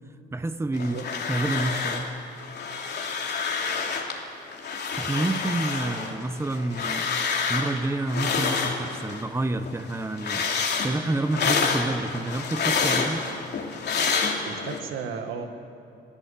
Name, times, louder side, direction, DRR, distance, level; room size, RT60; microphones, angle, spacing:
voice 1, 0.3-1.0 1.3-2.1 5.0-7.1 7.5-10.5 10.8-13.2, right 2 dB, 15° right, 10 dB, 1.1 m, -28 dB
sound 1, 0.7-2.1 2.4-4.2 4.5-9.3 9.6-14.8, left 5 dB, 60° left, 2.9 m, -28 dB
voice 2, 14.5-15.5, right 6 dB, 85° right, 6 dB, 2.0 m, -34 dB
27.5 x 16.0 x 8.3 m, 2.5 s
cardioid pair, 90°, 20 cm